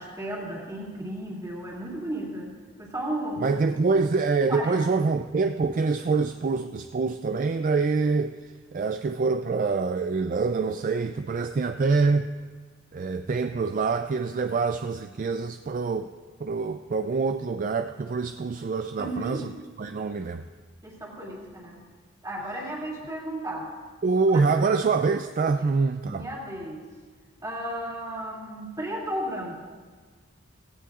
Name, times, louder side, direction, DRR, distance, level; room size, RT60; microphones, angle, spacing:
voice 1, 0.0-2.5 2.8-3.6 4.5-4.8 19.0-19.5 20.8-21.8 22.2-23.7 24.3-24.4 25.6-25.7 26.0-26.9 27.4-29.5, right 1 dB, 15° right, -3 dB, 2.6 m, -34 dB
voice 2, 3.4-8.3 8.7-12.3 12.9-16.1 16.4-19.5 19.8-20.4 24.0-26.3, right 4 dB, 40° right, 8 dB, 0.3 m, -25 dB
17.0 x 16.5 x 2.5 m, 1.5 s
head